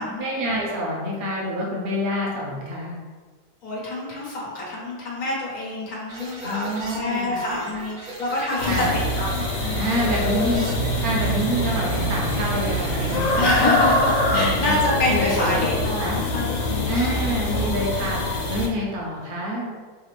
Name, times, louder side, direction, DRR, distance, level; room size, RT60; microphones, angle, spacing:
voice 1, 0.0-2.9 6.4-7.4 8.6-9.0 9.8-10.7 11.0-13.5 14.3-14.8 15.1-16.2 16.9-18.2 18.5-19.8, equal, 70° right, -3 dB, 0.5 m, -27 dB
voice 2, 3.6-9.3 9.6-10.6 13.4-17.8, left 2 dB, 50° left, -5 dB, 1.7 m, -27 dB
sound 1, 6.1-13.5, right 2 dB, 50° right, 1.5 m, -37 dB
sound 2, 8.6-18.7, left 1 dB, 85° left, 1.6 m, -24 dB
Guitar, 10.7-16.0, right 8 dB, 70° left, 1.5 m, -32 dB
5.8 x 2.4 x 3.3 m, 1.5 s
omnidirectional pair, 2.0 m